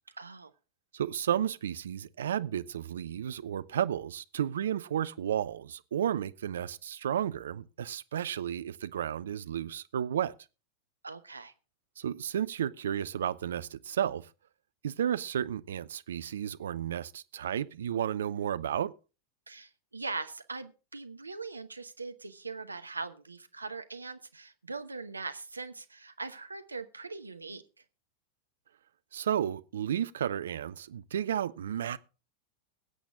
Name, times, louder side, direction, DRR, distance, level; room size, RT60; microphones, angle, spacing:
voice 1, 0.2-0.5 11.0-11.5 19.5-27.6, right 3 dB, 80° right, 1.0 m, -41 dB
voice 2, 0.9-10.3 12.0-14.3 14.8-18.9 29.1-32.0, right 9 dB, 65° right, 0.7 m, -32 dB
21.5 x 8.3 x 3.6 m
figure-of-eight pair, 90°, 0 cm